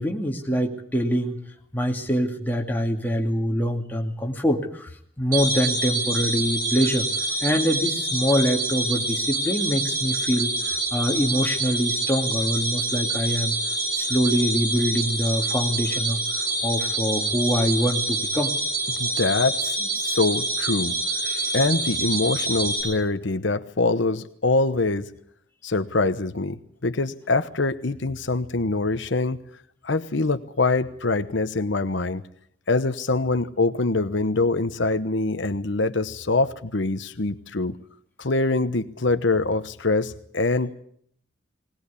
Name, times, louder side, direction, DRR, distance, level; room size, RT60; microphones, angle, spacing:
voice 1, 0.0-1.3 1.7-4.9 5.2-7.1 7.4-13.6 13.9-18.6 21.3-21.4, equal, 10° left, 0 dB, 2.5 m, -24 dB
sound 1, 5.3-22.8, right 2 dB, 45° right, 7.0 m, -26 dB
voice 2, 19.0-21.0 21.5-25.1 25.6-29.4 29.8-32.2 32.7-37.8 38.2-40.7, left 3 dB, 65° left, 11 dB, 1.0 m, -24 dB
20.0 x 20.0 x 8.4 m, 0.64 s
head